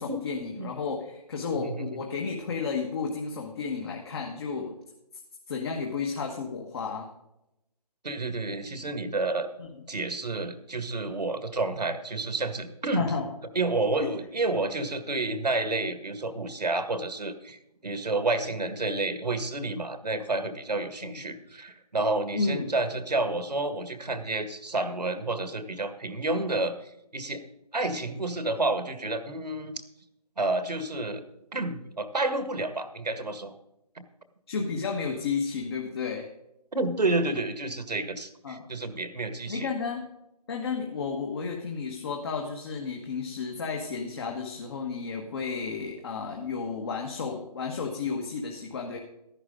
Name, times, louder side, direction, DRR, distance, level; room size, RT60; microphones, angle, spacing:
voice 1, 0.0-4.8 5.5-7.1 9.6-9.7 12.9-13.3 14.0-14.1 21.0-21.1 22.3-22.7 34.5-36.3 38.4-38.6 39.5-40.1 40.5-49.0, left 5 dB, 40° left, 1 dB, 1.6 m, -32 dB
voice 2, 1.5-1.9 8.0-9.5 9.9-13.1 13.6-27.4 27.7-29.8 30.4-31.3 31.5-33.5 34.0-34.1 36.7-39.7, right 2 dB, 85° right, 10 dB, 1.8 m, -30 dB
14.5 x 11.0 x 3.8 m, 0.87 s
figure-of-eight pair, 155°, 21 cm